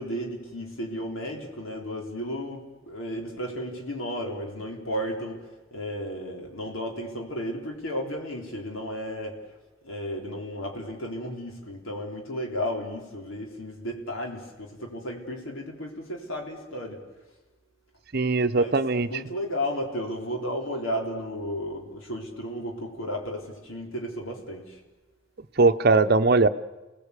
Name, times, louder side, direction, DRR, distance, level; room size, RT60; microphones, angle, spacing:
voice 1, 0.0-5.4 5.7-9.4 9.8-17.0 18.5-24.8, equal, 80° left, 1 dB, 3.9 m, -33 dB
voice 2, 18.1-19.1 25.6-26.5, right 3 dB, 50° right, 10 dB, 0.9 m, -20 dB
29.5 x 18.5 x 8.4 m, 1.2 s
head